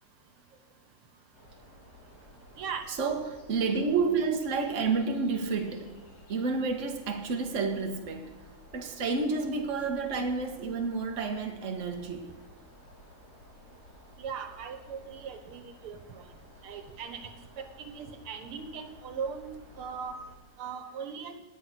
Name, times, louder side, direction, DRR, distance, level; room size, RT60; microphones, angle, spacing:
sound 1, 1.3-20.3, left 1 dB, 45° left, 3.6 m, -54 dB
voice 1, 2.9-5.9 6.3-8.3 8.7-12.3, right 4 dB, 40° right, 1.6 m, -30 dB
voice 2, 14.2-16.2 16.6-17.3 17.6-20.2 20.6-21.4, right 6 dB, 80° right, 2.1 m, -39 dB
17.5 x 9.3 x 6.1 m
omnidirectional pair, 2.4 m